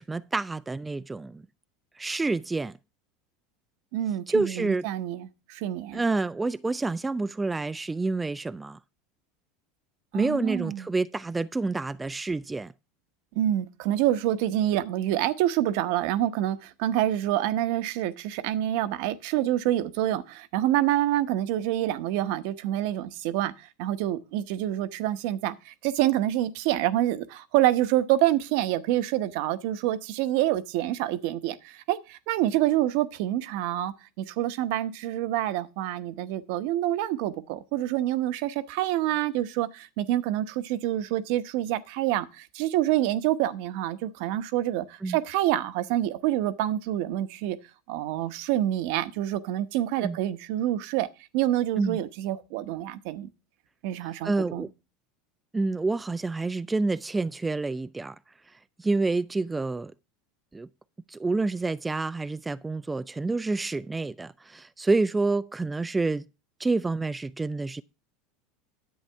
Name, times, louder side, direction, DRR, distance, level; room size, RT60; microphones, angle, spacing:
voice 1, 0.0-1.4 2.0-2.7 4.3-4.9 5.9-8.8 10.1-12.7 45.0-45.2 50.0-50.2 51.8-52.0 54.0-54.7 55.5-58.2 58.8-59.9 60.5-60.7 61.1-66.3 66.6-67.8, right 3 dB, 15° right, 0.4 m, -28 dB
voice 2, 3.9-6.0 10.1-10.9 13.3-47.6 47.9-51.1 51.3-53.3 53.8-54.6, right 13 dB, 65° right, 0.9 m, -27 dB
10.5 x 8.1 x 3.4 m
hypercardioid pair, 90°, 0 cm